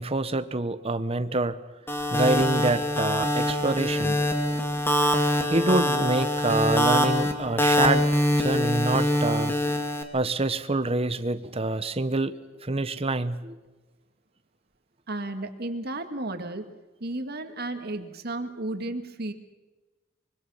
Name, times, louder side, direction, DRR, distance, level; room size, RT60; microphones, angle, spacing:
voice 1, 0.0-1.6 2.1-4.2 5.5-8.1 8.4-9.5 10.1-13.5, right 2 dB, 30° right, 12 dB, 1.0 m, -26 dB
sound 1, 1.9-10.0, left 1 dB, 10° left, 2.2 m, -24 dB
voice 2, 15.1-16.7 17.0-19.3, right 2 dB, 50° right, 7 dB, 2.1 m, -33 dB
25.0 x 24.0 x 5.7 m, 1.2 s
head